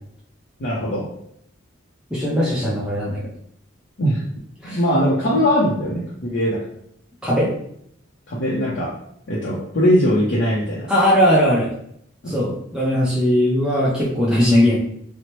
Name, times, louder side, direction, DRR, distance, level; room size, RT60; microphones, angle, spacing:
voice 1, 0.6-1.1 4.0-4.2 4.6-6.6 8.3-8.9 9.3-10.9 12.2-12.4, equal, 60° left, -6 dB, 0.6 m, -20 dB
voice 2, 2.1-3.2 4.6-4.8 5.3-5.4 7.2-7.5 10.9-11.7 12.3-14.8, equal, 5° right, -7 dB, 0.4 m, -19 dB
2.8 x 2.0 x 3.0 m, 0.70 s
head